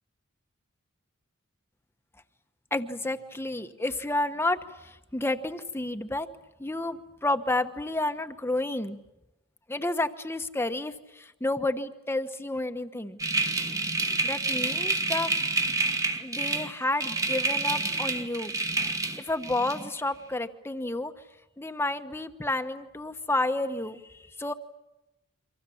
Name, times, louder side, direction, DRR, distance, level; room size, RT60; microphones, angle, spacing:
voice 1, 2.7-6.3 6.6-9.0 9.7-13.2 14.2-15.3 16.2-18.5 19.2-21.1 21.6-24.5, left 2 dB, 10° left, 9 dB, 1.1 m, -30 dB
sound 1, 13.2-19.9, right 3 dB, 15° right, 1.3 m, -28 dB
29.0 x 25.0 x 7.2 m, 0.96 s
head